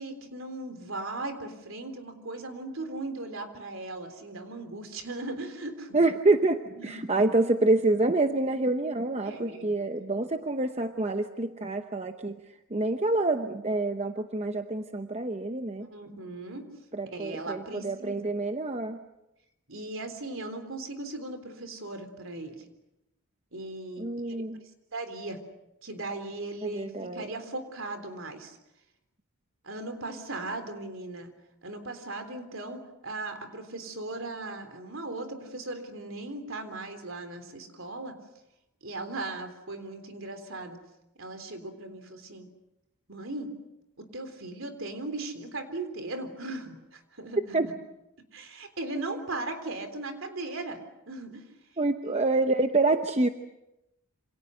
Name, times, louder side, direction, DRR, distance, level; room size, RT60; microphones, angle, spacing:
voice 1, 0.0-6.0 6.8-7.3 9.2-9.7 15.8-16.7 17.1-18.3 19.7-22.6 23.5-24.4 24.9-25.4 25.8-28.6 29.6-31.3 31.6-38.2 38.8-40.8 41.2-42.5 43.1-43.5 44.0-47.6 48.3-51.4 51.7-51.8, right 2 dB, 60° right, 8 dB, 3.7 m, -38 dB
voice 2, 5.9-12.4 12.7-15.9 16.9-19.0 24.0-24.6 26.6-27.2 47.5-47.7 51.8-53.3, right 2 dB, 30° right, 7 dB, 0.9 m, -27 dB
28.0 x 26.5 x 6.5 m, 0.92 s
head